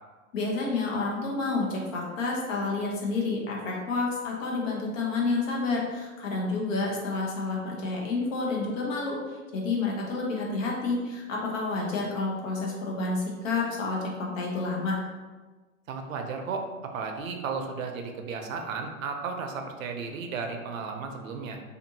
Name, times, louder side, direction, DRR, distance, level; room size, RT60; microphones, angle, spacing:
voice 1, 0.3-15.0, left 3 dB, 60° left, -2 dB, 0.9 m, -29 dB
voice 2, 15.9-21.6, right 5 dB, 65° right, 4 dB, 0.6 m, -34 dB
2.6 x 2.5 x 2.7 m, 1.3 s
hypercardioid pair, 115°, 43 cm